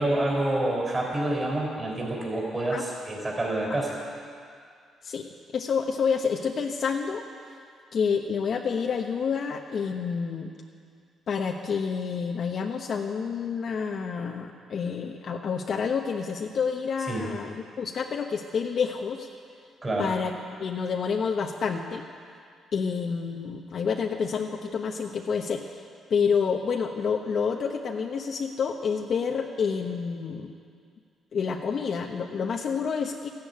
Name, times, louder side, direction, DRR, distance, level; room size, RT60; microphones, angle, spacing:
voice 1, 0.0-3.9 17.1-17.3 19.8-20.1, right 1 dB, 25° right, -2 dB, 4.2 m, -27 dB
voice 2, 5.0-7.3 7.9-10.5 11.3-19.3 20.0-20.3 20.6-22.1 22.7-25.8 26.1-30.5 31.3-33.3, left 6 dB, 55° left, 2 dB, 1.0 m, -28 dB
13.5 x 10.5 x 9.3 m, 2.2 s
cardioid pair, 90°, 0 cm